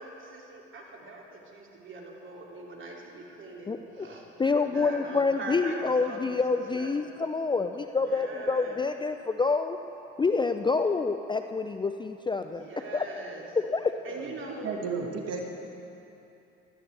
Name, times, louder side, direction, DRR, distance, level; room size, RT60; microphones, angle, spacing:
voice 1, 0.0-6.9 8.0-8.8 12.5-13.5 14.0-14.7, right 2 dB, 40° right, -1 dB, 2.7 m, -42 dB
voice 2, 3.7-4.1 4.4-9.8 10.2-12.6 12.9-13.1 13.6-14.0, left 4 dB, 15° left, 8 dB, 0.4 m, -27 dB
voice 3, 14.6-15.5, right 4 dB, 55° right, 1 dB, 1.7 m, -33 dB
17.0 x 12.5 x 3.4 m, 2.8 s
hypercardioid pair, 65°, 29 cm